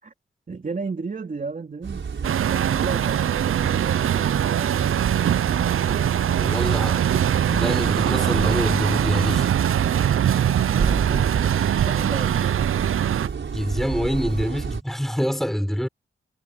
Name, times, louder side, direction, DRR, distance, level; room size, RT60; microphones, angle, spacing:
voice 1, 0.5-5.7 10.6-12.6, right 4 dB, 40° right, 3.5 m, -35 dB
sound 1, 1.8-14.8, right 6 dB, 65° right, 5.3 m, -30 dB
Truck, 2.2-13.3, right 10 dB, 80° right, 0.5 m, -22 dB
voice 2, 6.4-7.0 7.5-9.5 10.3-10.4 13.5-15.9, equal, ahead, 4.0 m, -25 dB
wide cardioid pair, 140°, 21 cm